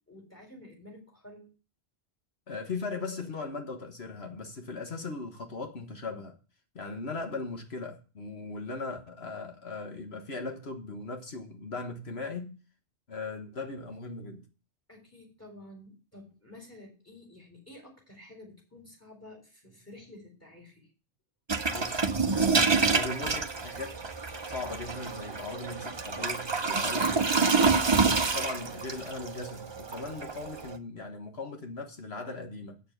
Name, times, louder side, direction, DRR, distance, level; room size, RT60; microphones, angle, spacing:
voice 1, 0.1-1.5 14.9-20.9, left 1 dB, 15° left, 3.9 m, -51 dB
voice 2, 2.5-6.4 6.7-12.6 13.1-14.5 21.7-24.0 24.5-27.8 28.2-32.8, left 3 dB, 65° left, 1.6 m, -39 dB
sound 1, 21.5-30.8, right 4 dB, 30° right, 0.7 m, -28 dB
8.0 x 6.9 x 6.7 m
omnidirectional pair, 1.1 m